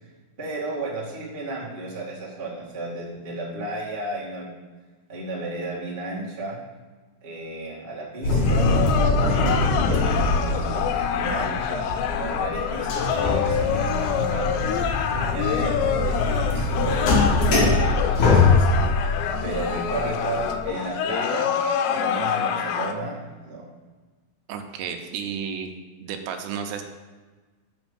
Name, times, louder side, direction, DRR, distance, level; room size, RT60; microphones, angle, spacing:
voice 1, 0.4-4.5 5.1-6.6 7.2-8.7 9.2-14.7 15.1-19.1 19.4-21.5 21.9-23.7, right 2 dB, 35° right, -6 dB, 0.8 m, -33 dB
sound 1, 8.2-20.7, left 3 dB, 65° left, 2.1 m, -23 dB
sound 2, 8.5-22.9, left 8 dB, 85° left, 2.9 m, -26 dB
voice 2, 24.5-25.7 26.0-26.8, right 7 dB, 80° right, 5 dB, 2.8 m, -32 dB
6.6 x 6.1 x 7.0 m, 1.3 s
omnidirectional pair, 5.1 m